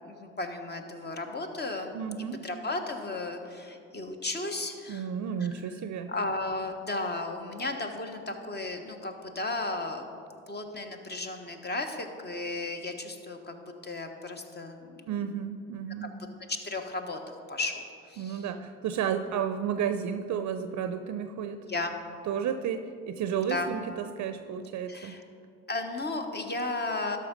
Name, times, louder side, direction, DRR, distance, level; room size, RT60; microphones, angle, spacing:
voice 1, 0.0-2.0 2.4-5.1 5.4-5.5 6.1-10.0 10.5-15.0 16.0-16.1 16.5-18.4 21.7-21.9 23.5-23.7 24.9-25.2 25.7-27.2, left 2 dB, 30° left, 5 dB, 1.2 m, -34 dB
voice 2, 1.9-2.5 4.9-6.1 15.1-16.1 18.2-21.7 22.3-25.2, right 8 dB, 55° right, 8 dB, 0.6 m, -32 dB
12.5 x 5.5 x 5.2 m, 2.4 s
hypercardioid pair, 55°, 34 cm